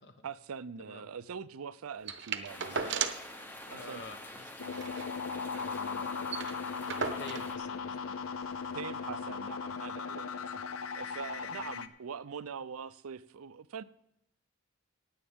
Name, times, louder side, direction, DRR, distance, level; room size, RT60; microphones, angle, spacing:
voice 1, 0.2-3.1 3.7-4.0 8.7-10.5 10.8-13.8, right 6 dB, 85° right, 0.5 m, -43 dB
sound 1, 2.1-3.4 3.7-3.8 4.0-4.2 4.6-5.7 6.0-6.1 6.3-7.5 8.4-8.5, right 6 dB, 55° right, 0.8 m, -36 dB
sound 2, 2.5-7.5, left 1 dB, 10° left, 0.8 m, -47 dB
voice 2, 2.6-3.0 3.7-4.7 5.5-6.6 7.2-8.2 11.4-11.6, left 2 dB, 50° left, 1.0 m, -49 dB
sound 3, 4.6-11.9, left 5 dB, 80° left, 0.6 m, -38 dB
16.0 x 9.6 x 3.6 m
head